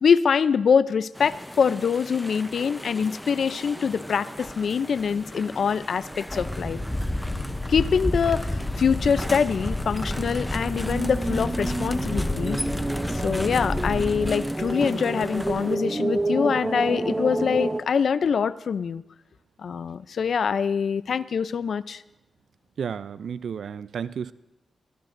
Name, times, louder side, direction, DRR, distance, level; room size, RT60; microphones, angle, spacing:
voice 1, 0.0-6.8 7.7-12.6 13.1-19.0 19.6-22.0, left 6 dB, 70° left, 0.5 m, -24 dB
sound 1, 1.1-15.8, left 1 dB, 5° left, 0.7 m, -34 dB
sound 2, 3.7-17.8, right 2 dB, 25° right, 0.9 m, -32 dB
Boat Water vehicle, 6.3-14.3, left 1 dB, 25° left, 1.6 m, -32 dB
voice 2, 22.8-24.3, right 7 dB, 75° right, 0.4 m, -32 dB
23.5 x 16.0 x 2.6 m
cardioid pair, 65°, 0 cm